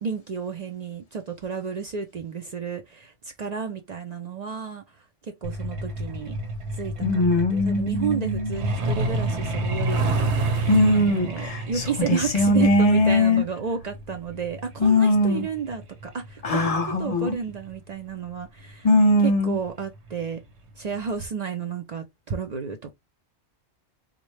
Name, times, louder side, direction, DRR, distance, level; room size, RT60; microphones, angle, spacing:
voice 1, 0.0-4.8 5.2-6.4 6.7-10.5 10.9-18.9 19.2-20.4 20.8-22.9, right 6 dB, 50° right, 0.5 m, -32 dB
Truck, 5.4-17.7 19.0-19.1 19.5-19.7 20.1-20.4 20.7-20.8 21.2-21.3, right 2 dB, 75° right, 1.1 m, -29 dB
voice 2, 7.0-8.6 10.7-13.4 14.8-15.4 16.4-17.4 18.8-19.6, left 1 dB, 40° left, 0.7 m, -20 dB
3.8 x 2.2 x 3.1 m
omnidirectional pair, 1.2 m